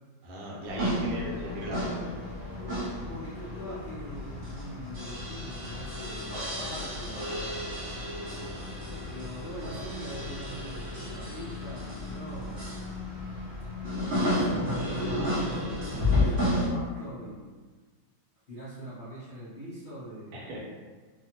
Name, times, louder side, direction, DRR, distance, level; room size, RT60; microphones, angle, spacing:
voice 1, 0.2-2.3 8.2-9.1 20.3-20.6, right 1 dB, 80° right, -3 dB, 1.4 m, -39 dB
sound 1, 0.7-16.7, left 1 dB, 55° right, 0.8 m, -32 dB
voice 2, 0.8-1.4 3.0-7.3 8.0-8.6 9.1-12.7 14.2-17.5 18.5-20.6, right 1 dB, 65° left, -12 dB, 0.5 m, -42 dB
sound 2, 11.1-16.2, left 2 dB, 50° left, 1.2 m, -43 dB
3.2 x 2.1 x 2.8 m, 1.4 s
omnidirectional pair, 2.1 m